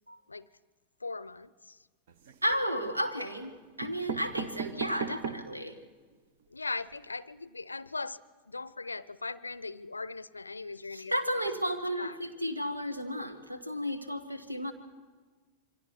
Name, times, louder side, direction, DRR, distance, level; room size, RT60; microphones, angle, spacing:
voice 1, 1.0-1.9 6.5-8.2 8.5-12.2, left 3 dB, 80° left, 19 dB, 0.5 m, -40 dB
sound 1, 2.1-2.7 3.4-3.5 3.8-5.6 6.1-6.2 6.4-6.5 6.8-7.0, right 6 dB, 55° right, 1.2 m, -38 dB
voice 2, 2.4-5.8 10.9-14.7, equal, 85° right, 7 dB, 1.7 m, -33 dB
27.5 x 23.5 x 4.5 m, 1.4 s
figure-of-eight pair, 90°, 0 cm